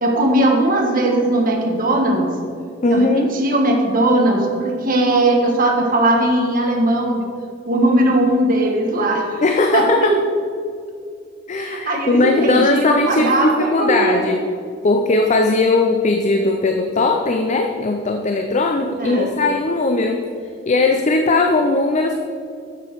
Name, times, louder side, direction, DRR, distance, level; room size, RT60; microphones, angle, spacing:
voice 1, 0.0-2.3 2.9-7.3 7.6-9.4 9.7-10.2 11.6-14.3 19.0-19.3, right 1 dB, 45° right, 1 dB, 1.4 m, -18 dB
voice 2, 2.8-3.3 9.4-10.2 11.5-14.5 14.8-20.3 20.7-22.1, left 2 dB, 40° left, 5 dB, 0.5 m, -18 dB
10.5 x 7.0 x 4.7 m, 2.3 s
head